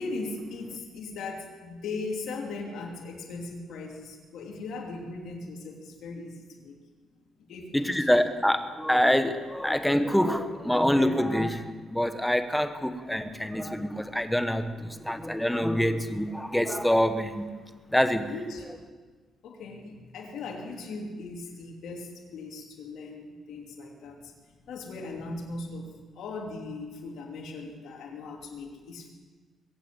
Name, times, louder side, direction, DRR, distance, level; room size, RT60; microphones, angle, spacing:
voice 1, 0.0-6.7 7.5-8.2 18.3-18.6 19.4-24.3 24.7-25.9 26.1-29.1, left 3 dB, 75° left, 3.0 m, -38 dB
voice 2, 7.7-17.5 17.9-18.3, equal, 5° left, 1.2 m, -26 dB
22.0 x 8.3 x 7.8 m
cardioid pair, 90°, 0 cm